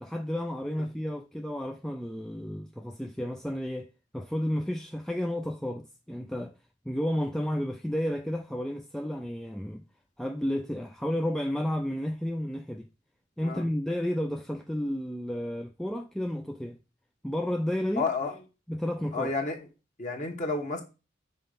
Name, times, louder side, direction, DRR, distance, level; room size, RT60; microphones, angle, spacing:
voice 1, 0.0-6.5 6.9-9.8 10.2-12.9 13.4-16.8 17.2-18.1 18.7-19.3, equal, ahead, 0.3 m, -32 dB
voice 2, 17.9-18.4 19.1-19.6 20.0-20.8, left 3 dB, 40° left, 1.3 m, -31 dB
5.6 x 4.4 x 5.1 m
head